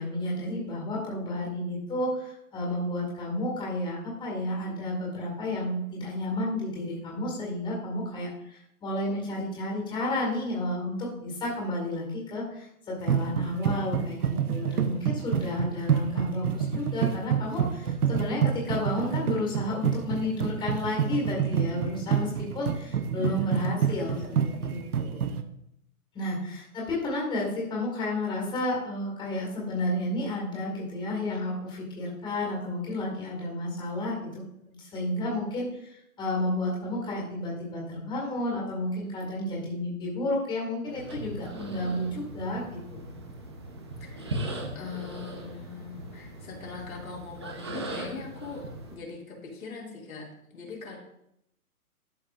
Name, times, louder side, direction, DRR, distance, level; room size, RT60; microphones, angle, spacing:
voice 1, 0.0-14.2 14.5-25.2 26.1-34.4 34.8-43.0, left 1 dB, 10° left, -4 dB, 2.0 m, -31 dB
sound 1, 13.0-25.4, right 8 dB, 80° right, 0.8 m, -27 dB
voice 2, 23.2-24.2 44.0-44.5 44.7-51.0, left 5 dB, 70° left, -2 dB, 2.3 m, -41 dB
sound 2, 40.8-49.0, right 1 dB, 20° right, 0.4 m, -39 dB
12.0 x 4.8 x 2.5 m, 0.77 s
hypercardioid pair, 135°, 44 cm